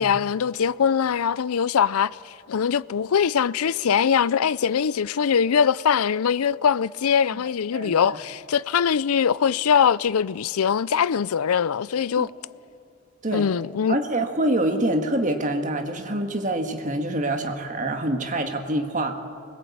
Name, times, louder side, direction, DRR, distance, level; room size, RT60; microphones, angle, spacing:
voice 1, 0.0-12.3 13.3-14.0, left 7 dB, 80° left, 0.5 m, -22 dB
voice 2, 7.7-8.2 12.2-12.3 13.2-13.5 13.9-19.1, right 1 dB, 35° right, 1.7 m, -26 dB
22.0 x 20.5 x 8.6 m
head